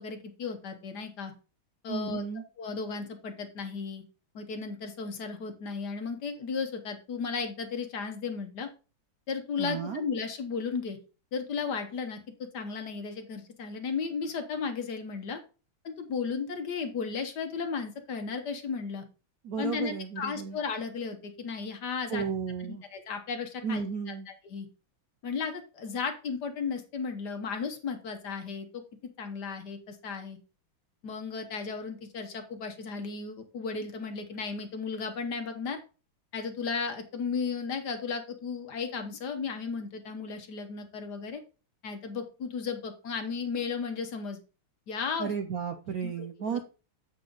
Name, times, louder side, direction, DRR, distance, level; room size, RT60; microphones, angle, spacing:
voice 1, 0.0-1.3 1.8-2.2 2.6-4.0 4.3-8.7 9.3-11.0 11.3-12.2 12.5-15.4 15.8-19.0 19.6-22.3 22.6-24.7 25.2-28.8 29.2-30.4 31.0-35.8 36.3-41.4 41.8-44.4 44.9-45.3 46.0-46.6, left 5 dB, 55° left, 6 dB, 1.5 m, -35 dB
voice 2, 1.9-2.4 9.6-10.0 19.4-20.6 22.1-22.8 23.6-24.3 45.2-46.7, right 6 dB, 65° right, 7 dB, 0.9 m, -33 dB
8.1 x 5.5 x 3.8 m, 0.33 s
omnidirectional pair, 2.3 m